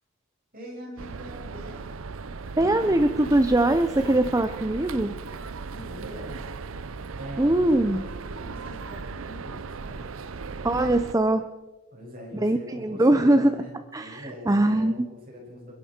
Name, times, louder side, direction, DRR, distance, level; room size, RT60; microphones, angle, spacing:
voice 1, 0.5-1.8 5.7-6.4 7.2-10.1 11.9-15.7, equal, 40° right, -2 dB, 6.1 m, -42 dB
sound 1, 1.0-11.1, right 4 dB, 70° right, 0.6 m, -37 dB
voice 2, 2.6-5.1 7.4-8.1 10.6-11.5 12.4-13.5 13.9-15.0, right 1 dB, 15° right, 9 dB, 0.6 m, -22 dB
29.0 x 11.0 x 4.4 m, 1.2 s
head